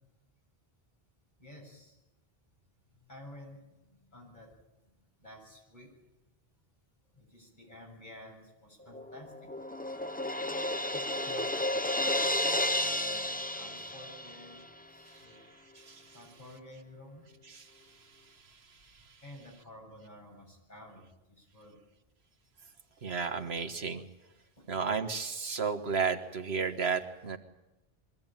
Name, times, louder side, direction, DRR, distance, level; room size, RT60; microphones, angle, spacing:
voice 1, 1.4-2.0 2.9-4.5 5.2-5.9 7.1-9.3 10.9-11.5 11.9-12.3 12.8-14.6 14.9-15.4 16.1-17.3 19.2-21.8 24.6-24.7, left 1 dB, 50° left, 0 dB, 7.8 m, -51 dB
Crash cymbal, 8.9-14.6, left 1 dB, 10° left, 0.7 m, -32 dB
voice 2, 15.7-16.1 17.5-17.6 23.0-24.0 24.7-27.4, right 5 dB, 85° right, 7 dB, 1.7 m, -32 dB
23.5 x 16.5 x 9.1 m, 1.0 s
omnidirectional pair, 1.0 m